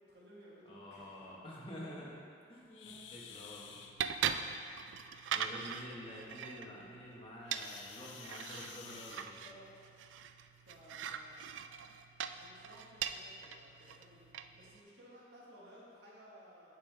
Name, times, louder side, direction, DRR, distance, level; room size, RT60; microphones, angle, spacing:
voice 1, 0.0-1.3 2.9-3.0 4.5-4.9 5.4-5.8 7.0-7.3 9.2-9.8 10.1-10.2 10.7-11.4 12.4-16.8, equal, 65° right, -5 dB, 1.6 m, -58 dB
voice 2, 0.7-2.2 2.5-3.8 5.3-9.4, equal, 30° left, -5 dB, 1.2 m, -49 dB
sound 1, 2.7-3.9 7.5-9.7 10.9-11.1 11.7-11.8 12.4-12.5 13.3-13.4 13.8-14.0, left 7 dB, 80° left, 0.5 m, -52 dB
sound 2, 2.9-14.8, right 8 dB, 85° right, 0.3 m, -42 dB
9.2 x 5.2 x 3.4 m, 2.3 s
head